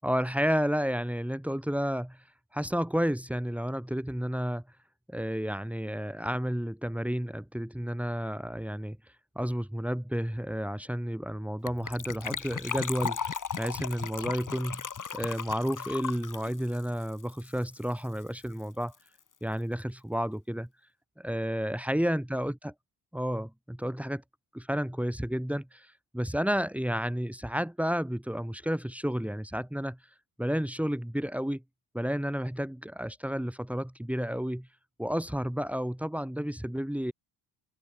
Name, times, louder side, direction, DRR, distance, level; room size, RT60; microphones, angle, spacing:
voice 1, 0.0-2.2 2.5-4.6 5.1-9.0 9.3-14.9 15.1-18.9 19.4-20.7 21.2-22.7 23.1-24.2 24.5-30.0 30.4-31.6 31.9-34.7 35.0-37.1, equal, 5° right, 6.2 m, -31 dB
Gurgling / Trickle dribble / Fill (with liquid), 11.7-17.9 18.2-18.3 18.4-18.6 18.9-19.0, left 6 dB, 40° left, 3.3 m, -36 dB
cardioid pair, 90°, 47 cm